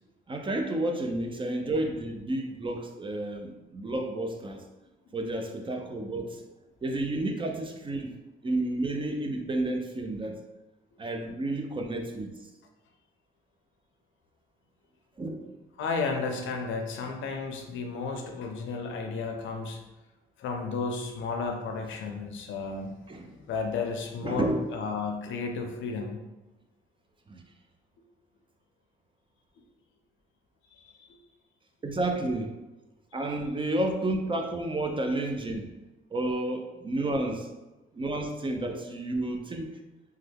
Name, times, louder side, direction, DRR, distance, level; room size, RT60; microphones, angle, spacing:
voice 1, 0.3-4.6 5.1-6.4 6.8-8.2 8.4-10.4 11.0-12.3 15.2-15.5 23.1-23.4 24.2-24.7 27.3-27.4 31.8-32.6 33.1-35.7 36.1-37.5 37.9-39.8, right 2 dB, 25° right, 3 dB, 0.4 m, -31 dB
voice 2, 15.8-19.8 20.4-26.2 30.8-31.2, left 4 dB, 75° left, 3 dB, 0.6 m, -33 dB
3.2 x 2.2 x 3.4 m, 1.1 s
cardioid pair, 90°, 20 cm